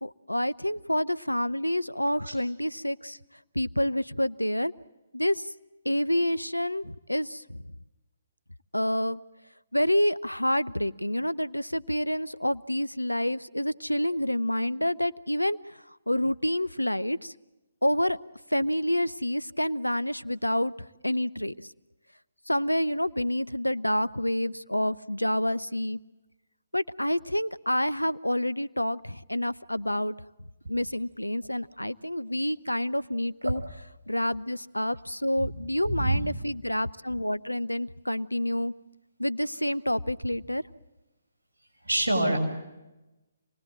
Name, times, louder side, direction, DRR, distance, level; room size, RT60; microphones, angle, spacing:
voice 1, 0.0-3.2 3.5-4.7 5.1-5.5 5.8-7.6 8.7-9.2 9.7-15.8 16.1-17.3 17.8-18.2 18.5-21.7 22.5-26.0 26.7-30.1 30.7-33.6 34.1-38.7 39.2-40.6, left 1 dB, 90° left, 18 dB, 0.7 m, -28 dB
voice 2, 35.9-36.2 41.8-42.4, right 1 dB, 70° right, 2 dB, 6.1 m, -25 dB
27.5 x 19.0 x 7.5 m, 1.0 s
figure-of-eight pair, 135°, 0 cm